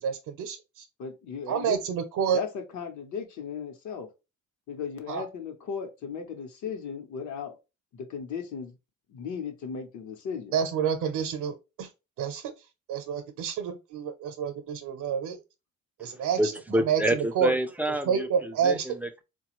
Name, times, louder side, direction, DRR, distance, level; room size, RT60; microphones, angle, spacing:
voice 1, 0.0-0.9 1.5-2.4 5.1-5.2 10.5-11.9 12.2-15.4 16.0-17.5 18.0-18.9, right 7 dB, 75° right, 0.7 m, -29 dB
voice 2, 1.0-1.8 2.3-2.5 2.7-4.1 4.7-7.6 7.9-8.8 9.1-10.5, left 6 dB, 65° left, 0.9 m, -36 dB
voice 3, 16.4-19.2, right 1 dB, 5° right, 0.3 m, -28 dB
4.2 x 2.3 x 2.9 m
cardioid pair, 150°, 31 cm